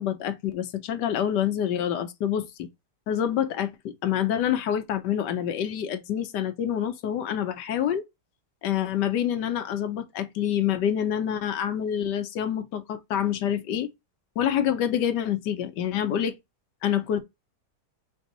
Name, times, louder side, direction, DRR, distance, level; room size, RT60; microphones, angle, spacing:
voice 1, 0.0-2.7 3.1-8.0 8.6-13.9 14.4-16.3 16.8-17.2, left 9 dB, 85° left, 1.4 m, -27 dB
4.9 x 2.7 x 3.9 m
omnidirectional pair, 1.8 m